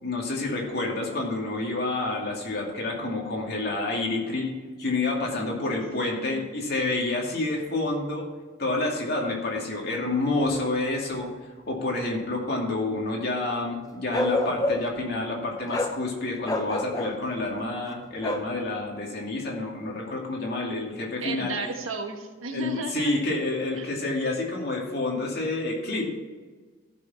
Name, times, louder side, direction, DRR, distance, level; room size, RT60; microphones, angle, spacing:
voice 1, 0.0-4.5 4.8-8.3 8.6-11.3 11.7-21.5 22.5-26.0, left 2 dB, 50° left, -2 dB, 2.5 m, -28 dB
voice 2, 5.3-5.8 6.1-6.5 21.2-23.1 23.7-23.9, right 3 dB, 85° right, 4 dB, 1.4 m, -34 dB
Bark, 14.1-15.0 15.7-16.0 16.4-17.2 18.2-18.5, left 2 dB, 20° left, 0.6 m, -27 dB
14.5 x 6.3 x 4.3 m, 1.4 s
head